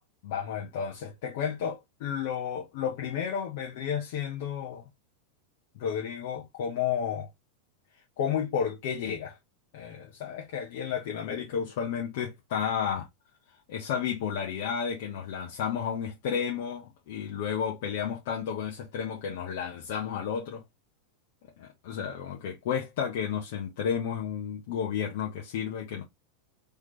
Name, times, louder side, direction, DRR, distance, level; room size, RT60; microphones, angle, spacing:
voice 1, 0.2-4.8 5.7-7.3 8.2-9.4 9.7-13.1 13.7-20.6 21.6-26.0, left 8 dB, 50° left, 1.2 m, -32 dB
4.0 x 3.5 x 3.3 m
supercardioid pair, 180°, 0 cm